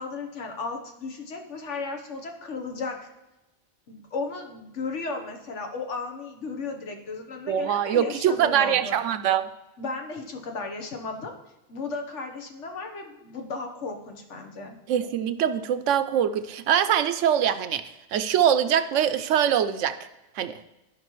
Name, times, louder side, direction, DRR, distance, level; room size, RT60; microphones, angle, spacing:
voice 1, 0.0-3.1 3.9-9.0 9.8-11.3 11.7-14.8, left 3 dB, 80° left, 4 dB, 1.5 m, -35 dB
voice 2, 7.5-9.5 14.9-17.8 18.1-20.0 20.3-20.6, right 9 dB, 90° right, 10 dB, 1.0 m, -23 dB
14.0 x 5.3 x 3.1 m, 0.99 s
omnidirectional pair, 1.2 m